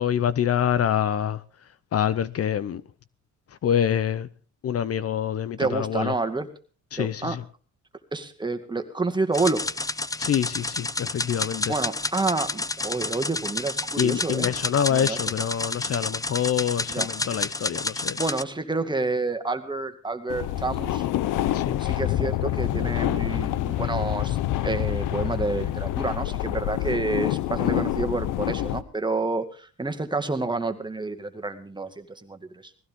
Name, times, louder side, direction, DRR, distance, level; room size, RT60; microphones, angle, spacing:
voice 1, 0.0-1.4 1.9-2.8 3.6-4.3 4.6-6.1 6.9-7.4 10.2-11.7 14.0-18.2 21.5-21.8, left 9 dB, 50° left, 0.8 m, -26 dB
voice 2, 5.6-6.5 7.0-7.4 8.1-9.6 11.7-14.5 14.9-15.2 16.9-17.1 18.2-21.1 21.8-24.4 24.6-32.4, right 3 dB, 15° right, 2.1 m, -29 dB
sound 1, 9.3-18.4, left 2 dB, 10° left, 0.7 m, -30 dB
sound 2, 20.3-28.8, left 14 dB, 85° left, 0.8 m, -27 dB
20.5 x 15.5 x 3.7 m
cardioid pair, 90°, 30 cm